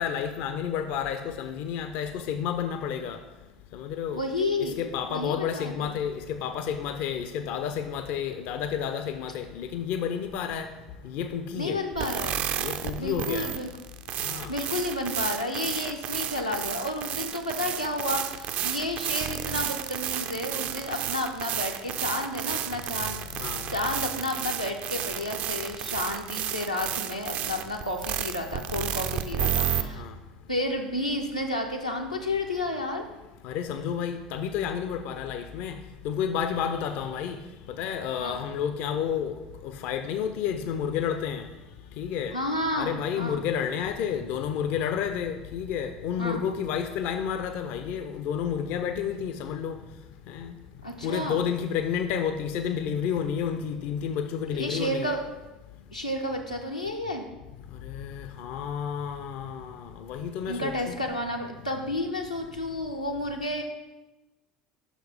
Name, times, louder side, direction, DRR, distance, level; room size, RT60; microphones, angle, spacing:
voice 1, 0.0-3.2 3.7-4.2 4.6-10.7 11.0-11.8 12.6-13.5 14.2-14.5 23.4-23.7 30.0-30.1 33.4-35.8 36.0-37.4 37.8-39.3 39.6-41.4 42.0-42.3 42.8-49.8 50.3-50.6 51.0-55.1 57.8-61.0, left 8 dB, 50° left, 9 dB, 0.4 m, -30 dB
voice 2, 4.1-4.8 5.1-5.9 11.5-12.5 13.0-13.7 14.5-23.2 23.7-30.0 30.5-33.1 38.2-38.4 42.3-43.4 46.2-46.4 50.8-51.4 54.5-55.2 55.9-57.3 60.5-63.6, left 1 dB, 90° left, 1 dB, 0.7 m, -31 dB
sound 1, 12.0-29.8, right 10 dB, 45° right, 0.4 m, -32 dB
5.9 x 5.1 x 5.0 m, 1.1 s
figure-of-eight pair, 70°, 4 cm